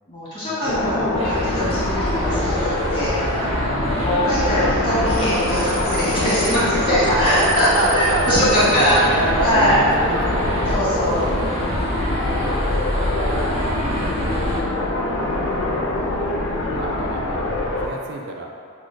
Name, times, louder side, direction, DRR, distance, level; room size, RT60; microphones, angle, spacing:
voice 1, 0.1-3.2 4.0-9.0 9.4-9.8 10.7-11.3, equal, 25° left, -11 dB, 1.3 m, -21 dB
voice 2, 0.6-1.2 3.4-4.1 7.0-10.5 11.7-14.0 15.1-15.9 16.7-17.5 17.8-18.5, right 2 dB, 50° right, 1 dB, 0.4 m, -29 dB
sound 1, 0.7-17.9, left 1 dB, 65° left, 0.5 m, -24 dB
sound 2, 1.2-14.6, equal, 35° right, 1.3 m, -26 dB
6.2 x 2.9 x 2.3 m, 2.3 s
head